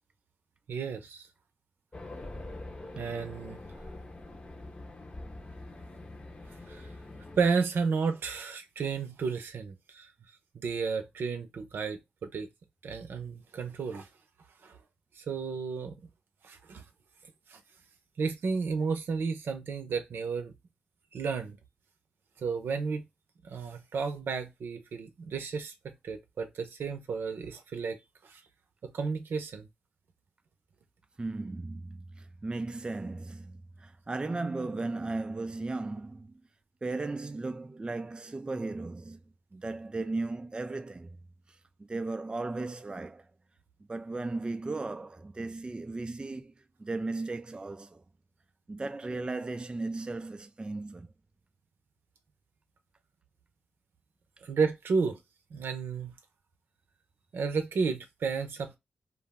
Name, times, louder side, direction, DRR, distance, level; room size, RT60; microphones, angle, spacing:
voice 1, 0.7-1.3 3.0-3.6 6.7-6.9 7.4-10.1 10.5-12.5 12.8-14.1 14.6-14.7 15.2-16.0 16.4-16.8 17.5-17.6 18.2-20.5 21.1-21.6 22.4-23.0 23.4-25.7 26.0-28.0 28.3-28.4 28.9-29.7 54.4-55.2 55.5-56.1 57.3-58.8, right 5 dB, 80° right, 0.6 m, -32 dB
Race car auto racing, 1.9-7.5, left 2 dB, 30° left, 0.8 m, -44 dB
voice 2, 31.2-36.3 36.8-39.2 39.5-41.2 41.8-43.3 43.9-46.5 46.8-48.0 48.7-51.1, right 3 dB, 25° right, 0.3 m, -36 dB
2.5 x 2.0 x 3.5 m
cardioid pair, 50°, 4 cm